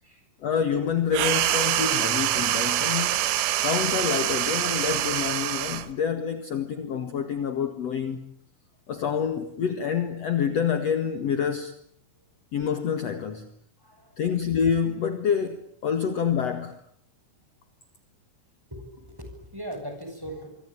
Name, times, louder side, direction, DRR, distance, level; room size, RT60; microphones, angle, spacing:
voice 1, 0.4-3.2 3.6-8.3 8.9-11.7 12.5-13.5 14.2-16.8, left 7 dB, 55° left, 1.9 m, -27 dB
sound 1, 1.1-5.9, right 13 dB, 85° right, 3.8 m, -25 dB
voice 2, 13.8-14.3 18.7-20.5, equal, 5° right, 7.5 m, -40 dB
26.0 x 25.0 x 8.8 m
omnidirectional pair, 5.5 m